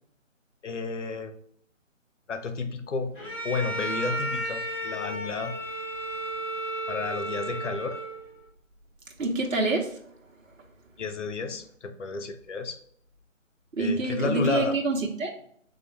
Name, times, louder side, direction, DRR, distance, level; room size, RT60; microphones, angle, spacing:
voice 1, 0.6-1.3 2.3-5.6 6.9-8.0 11.0-12.8 13.8-14.8, left 4 dB, 65° left, 7 dB, 0.8 m, -32 dB
Bowed string instrument, 3.1-8.4, right 1 dB, 5° left, 1.5 m, -33 dB
voice 2, 9.2-10.0 13.7-15.3, right 2 dB, 75° right, 1 dB, 0.9 m, -26 dB
3.9 x 3.2 x 3.0 m, 0.63 s
figure-of-eight pair, 155°, 39 cm